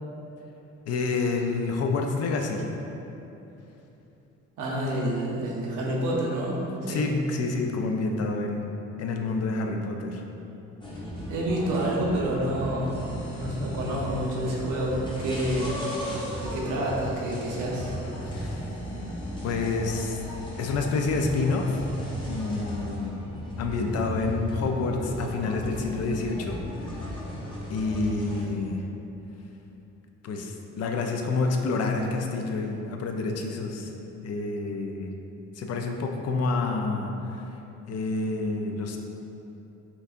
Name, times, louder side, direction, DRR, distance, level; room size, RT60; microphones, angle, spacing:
voice 1, 0.9-2.7 6.9-8.7 9.0-10.2 18.3-18.7 19.4-20.2 20.6-21.8 22.3-23.2 23.6-26.6 26.8-27.1 27.7-28.8 30.2-33.9 34.2-35.1 35.6-37.5 37.9-39.0, left 3 dB, 55° left, 3 dB, 0.4 m, -28 dB
voice 2, 4.6-6.6 6.9-7.1 11.3-13.0 13.4-15.8 16.4-17.9 18.2-18.5, right 1 dB, 90° right, -4 dB, 0.8 m, -28 dB
sound 1, 10.8-28.4, equal, 15° left, 0.7 m, -36 dB
sound 2, 12.9-22.8, left 1 dB, 75° left, 1.3 m, -50 dB
4.3 x 2.7 x 2.5 m, 3.0 s
cardioid pair, 90°, 30 cm